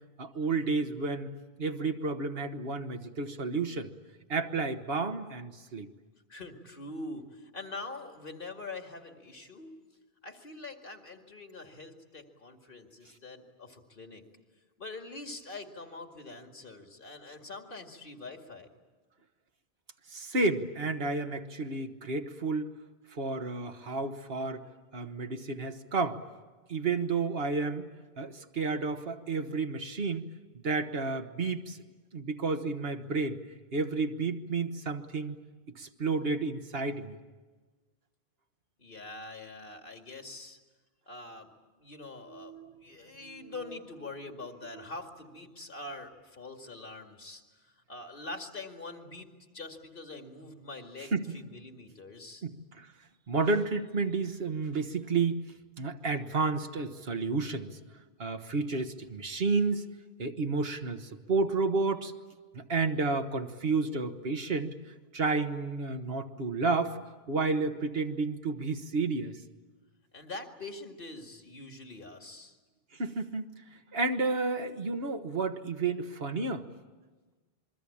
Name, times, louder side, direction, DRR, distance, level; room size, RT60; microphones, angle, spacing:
voice 1, 0.2-1.3 1.6-3.9 4.3-5.9 20.1-22.7 23.1-24.6 24.9-26.2 26.7-27.9 28.2-31.8 32.1-33.4 33.7-35.4 35.7-37.2 42.3-42.7 43.4-43.5 51.1-51.4 52.4-52.9 53.3-55.4 55.8-57.8 58.2-59.9 60.2-62.1 62.5-64.8 65.1-67.0 67.3-69.4 72.9-76.7, right 3 dB, 70° right, 6 dB, 1.6 m, -31 dB
voice 2, 6.3-9.7 10.2-14.2 14.8-18.7 38.8-40.6 41.1-52.4 70.1-72.6, left 2 dB, 60° left, 4 dB, 2.4 m, -44 dB
27.5 x 22.5 x 8.6 m, 1.3 s
omnidirectional pair, 1.0 m